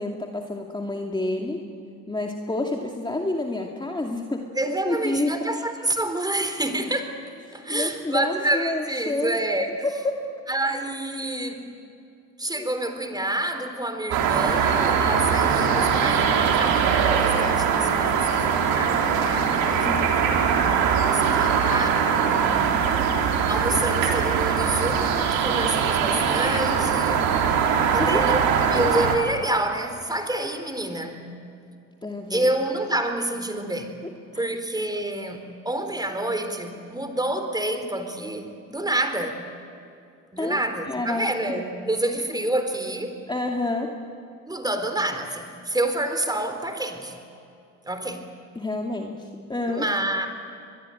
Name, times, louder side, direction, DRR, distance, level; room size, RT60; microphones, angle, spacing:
voice 1, 0.0-1.6 2.1-5.4 7.5-9.4 9.8-10.3 12.6-12.7 19.8-20.2 28.0-28.3 32.0-32.5 34.0-34.5 40.4-40.6 40.9-41.3 43.3-43.9 48.6-49.9, left 2 dB, 10° left, 2 dB, 2.4 m, -29 dB
voice 2, 4.5-7.2 7.5-9.7 10.5-11.7 12.4-20.2 20.8-22.1 23.5-27.3 27.9-31.3 32.3-33.9 34.3-39.4 40.3-43.2 44.5-47.2 47.8-48.3 49.7-50.3, right 1 dB, 10° right, 7 dB, 4.0 m, -28 dB
sound 1, 14.1-29.2, right 7 dB, 65° right, 3.8 m, -21 dB
24.0 x 22.0 x 9.1 m, 2.4 s
hypercardioid pair, 65°, 39 cm